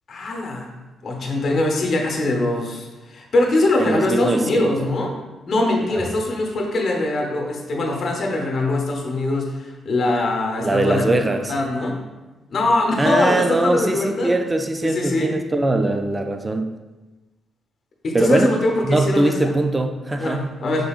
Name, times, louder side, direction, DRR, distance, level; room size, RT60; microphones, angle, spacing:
voice 1, 0.1-0.7 1.0-5.1 5.5-12.0 12.5-14.4 14.8-15.3 18.0-19.5 20.2-20.9, left 2 dB, 55° left, 1 dB, 0.9 m, -22 dB
voice 2, 3.8-4.9 5.9-6.2 10.6-11.5 13.0-16.7 18.1-18.5 18.8-20.5, right 2 dB, 20° right, 6 dB, 0.3 m, -21 dB
5.3 x 3.9 x 2.4 m, 1.1 s
cardioid pair, 70°, 0 cm